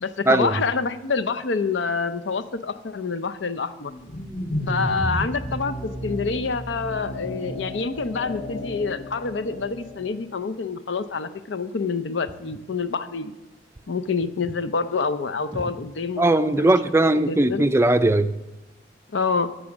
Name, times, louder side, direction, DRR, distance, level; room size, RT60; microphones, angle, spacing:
voice 1, 0.0-3.9 4.7-13.4 13.9-16.7 17.3-17.7 19.1-19.5, left 4 dB, 85° left, 11 dB, 0.6 m, -27 dB
sound 1, 3.8-10.2, equal, 25° left, 0.8 m, -32 dB
voice 2, 16.2-18.3, right 2 dB, 15° right, 11 dB, 0.4 m, -19 dB
13.5 x 5.0 x 7.2 m, 1.0 s
head